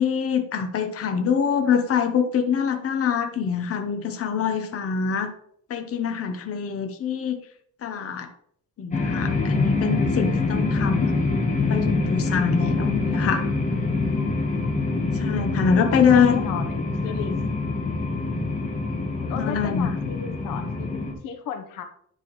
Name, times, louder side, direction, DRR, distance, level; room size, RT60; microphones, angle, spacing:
voice 1, 0.0-5.3 5.7-7.4 7.8-8.3 8.8-11.2 11.6-13.5 15.1-16.4 17.2-17.4 19.3-19.9, left 6 dB, 50° left, 6 dB, 0.9 m, -24 dB
sound 1, 8.9-21.1, left 3 dB, 25° left, 1.4 m, -25 dB
voice 2, 13.2-13.5 15.8-17.4 19.2-21.8, left 7 dB, 90° left, 6 dB, 1.0 m, -35 dB
10.5 x 4.4 x 3.1 m, 0.66 s
cardioid pair, 140°, 31 cm